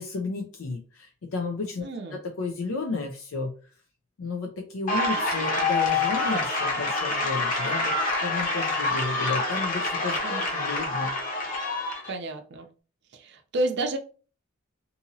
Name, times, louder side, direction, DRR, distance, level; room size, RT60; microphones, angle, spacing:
voice 1, 0.0-1.9 2.1-3.5 4.2-7.9 8.2-11.1, left 3 dB, 80° left, 2 dB, 0.5 m, -32 dB
voice 2, 1.8-2.2 10.2-10.5 12.1-12.7 13.1-14.0, right 2 dB, 55° right, 6 dB, 0.5 m, -30 dB
sound 1, 4.9-12.1, left 3 dB, 40° left, 0.9 m, -27 dB
2.8 x 2.7 x 2.6 m, 0.37 s
head